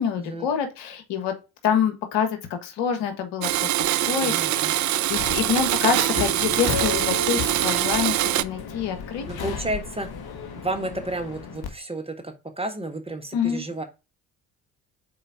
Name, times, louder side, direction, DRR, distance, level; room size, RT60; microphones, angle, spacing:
voice 1, 0.0-1.3 1.6-9.4 13.3-13.6, left 7 dB, 70° left, 7 dB, 1.6 m, -27 dB
Domestic sounds home sounds, 3.4-8.4, right 14 dB, 45° right, 0.5 m, -23 dB
voice 2, 4.2-4.7 9.3-10.1 10.6-13.8, right 2 dB, 15° right, 5 dB, 1.4 m, -31 dB
Subway metro underground, 5.1-11.7, left 6 dB, 55° left, 1.5 m, -34 dB
4.7 x 4.3 x 4.9 m, 0.28 s
hypercardioid pair, 50°, 44 cm